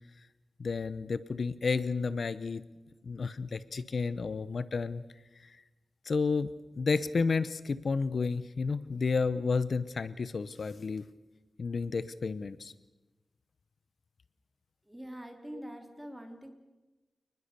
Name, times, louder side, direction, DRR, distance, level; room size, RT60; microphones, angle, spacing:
voice 1, 0.6-2.6 3.0-5.0 5.3-5.6 6.0-6.5 6.7-11.1 11.6-12.7 15.5-15.6, left 4 dB, 60° left, 15 dB, 0.7 m, -31 dB
voice 2, 14.8-16.5, right 1 dB, 10° right, 4 dB, 3.4 m, -44 dB
28.0 x 20.5 x 6.8 m, 1.1 s
wide cardioid pair, 105°, 0 cm